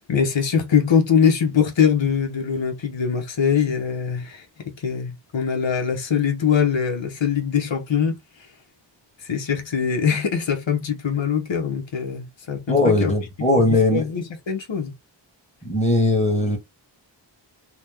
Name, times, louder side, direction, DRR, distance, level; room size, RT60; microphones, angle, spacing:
voice 1, 0.1-4.5 4.8-8.5 9.2-13.1 13.4-14.9, left 7 dB, 75° left, 0.9 m, -22 dB
voice 2, 12.7-14.0 15.6-16.6, left 2 dB, 15° left, 1.3 m, -19 dB
2.9 x 2.1 x 3.4 m
wide cardioid pair, 40°, 45 cm